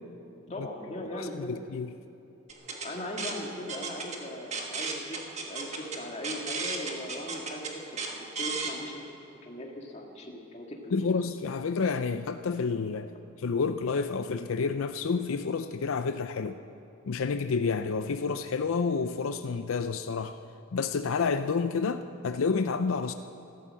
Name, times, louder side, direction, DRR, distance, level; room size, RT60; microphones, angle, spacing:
voice 1, 0.5-1.6 2.8-5.2 5.5-8.0 8.4-9.0 9.4-11.0, left 1 dB, 30° left, 0 dB, 1.9 m, -39 dB
voice 2, 1.2-1.9 10.9-13.1 13.4-16.6 17.1-20.4 20.7-23.1, left 5 dB, 80° left, 10 dB, 0.5 m, -29 dB
sound 1, 2.5-8.7, right 4 dB, 35° right, 1.5 m, -35 dB
15.0 x 12.5 x 7.5 m, 2.9 s
head